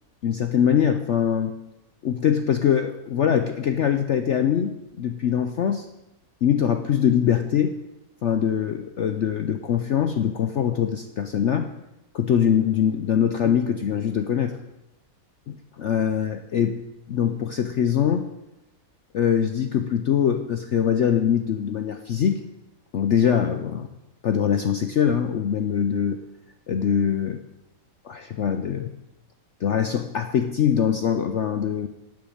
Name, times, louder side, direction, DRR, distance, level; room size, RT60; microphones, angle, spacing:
voice 1, 0.2-1.6 2.0-5.9 6.4-7.8 8.2-11.7 12.1-14.6 15.5-16.8 17.1-18.3 19.1-22.4 22.9-23.9 24.2-26.2 26.7-27.4 28.0-28.9 29.6-31.9, left 8 dB, 65° left, 8 dB, 0.7 m, -23 dB
10.5 x 8.7 x 7.4 m, 0.94 s
omnidirectional pair, 1.9 m